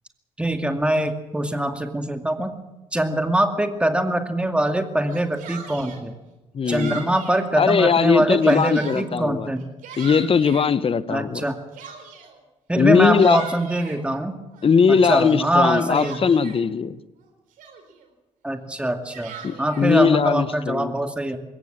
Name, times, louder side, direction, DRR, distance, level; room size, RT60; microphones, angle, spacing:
voice 1, 0.4-2.6 2.9-6.1 6.7-9.7 11.1-11.6 12.7-14.4 15.0-16.2 18.4-19.3 19.6-21.4, right 1 dB, 10° right, 6 dB, 2.3 m, -23 dB
Yell, 5.0-6.0 6.7-7.5 8.0-9.1 9.5-10.7 11.4-12.4 12.9-14.0 14.5-16.6 17.2-17.3 17.6-18.1 18.8-19.9, right 6 dB, 75° right, 4.2 m, -39 dB
voice 2, 6.5-7.0 7.6-9.5 10.0-11.5 12.8-13.5 14.6-17.0 19.4-20.9, left 6 dB, 40° left, 16 dB, 1.1 m, -19 dB
22.0 x 17.5 x 7.5 m, 1.0 s
hypercardioid pair, 55°, 14 cm